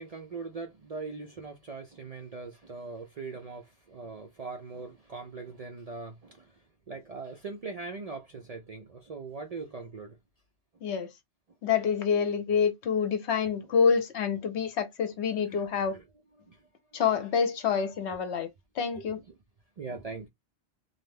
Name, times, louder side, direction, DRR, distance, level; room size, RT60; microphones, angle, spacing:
voice 1, 0.0-6.5 6.9-10.2 15.5-15.6 15.9-16.0 16.5-16.6 19.0-19.1 19.8-20.3, right 4 dB, 55° right, 0.4 m, -41 dB
voice 2, 11.6-16.0 16.9-18.5 18.8-19.2, left 6 dB, 75° left, 0.9 m, -27 dB
2.6 x 2.1 x 3.2 m
omnidirectional pair, 1.2 m